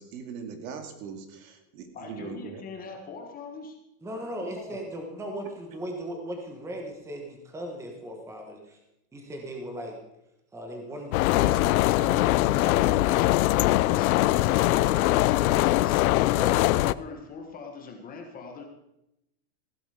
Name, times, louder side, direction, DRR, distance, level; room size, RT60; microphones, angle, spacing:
voice 1, 0.0-2.6, right 6 dB, 60° right, 6 dB, 2.5 m, -40 dB
voice 2, 1.9-3.8 4.4-4.8 12.7-18.6, left 4 dB, 20° left, 3 dB, 1.3 m, -42 dB
voice 3, 4.0-8.8 9.1-10.0 10.5-13.2 16.3-16.6, equal, 5° right, 2 dB, 1.4 m, -38 dB
sound 1, 11.1-16.9, left 17 dB, 65° left, 0.6 m, -22 dB
16.0 x 11.0 x 5.0 m, 0.86 s
supercardioid pair, 175°, 47 cm